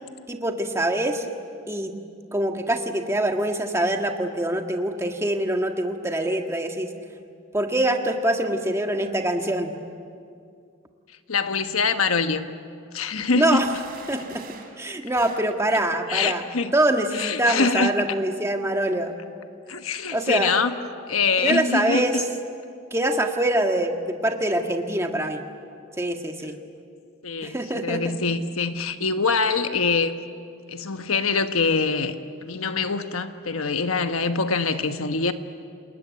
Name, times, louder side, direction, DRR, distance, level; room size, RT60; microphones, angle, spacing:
voice 1, 0.3-1.3 1.7-1.9 2.3-6.9 7.5-9.7 13.3-13.7 14.1-14.4 14.8-16.4 16.7-19.2 20.1-20.5 21.4-22.2 22.9-25.4 26.0-26.6 27.4-28.1, right 1 dB, 15° right, 4 dB, 1.6 m, -24 dB
voice 2, 11.3-12.5 12.9-13.7 16.1-16.7 17.1-17.9 19.7-20.7 21.1-22.2 26.4-26.5 27.2-30.1 30.7-32.1 32.4-35.3, left 4 dB, 85° left, 8 dB, 1.2 m, -24 dB
sound 1, 13.6-14.8 15.2-15.5, right 5 dB, 45° right, 3.1 m, -44 dB
28.5 x 20.5 x 9.4 m, 2.3 s
head